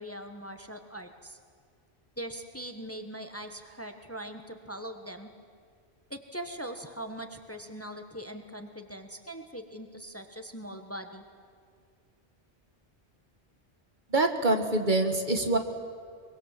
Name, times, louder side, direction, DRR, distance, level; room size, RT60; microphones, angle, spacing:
voice 1, 0.0-1.4 2.2-5.3 6.1-11.2, right 1 dB, 15° left, 6 dB, 1.3 m, -41 dB
voice 2, 14.1-15.6, right 2 dB, 50° right, 6 dB, 1.7 m, -25 dB
23.5 x 22.5 x 7.5 m, 2.1 s
omnidirectional pair, 1.1 m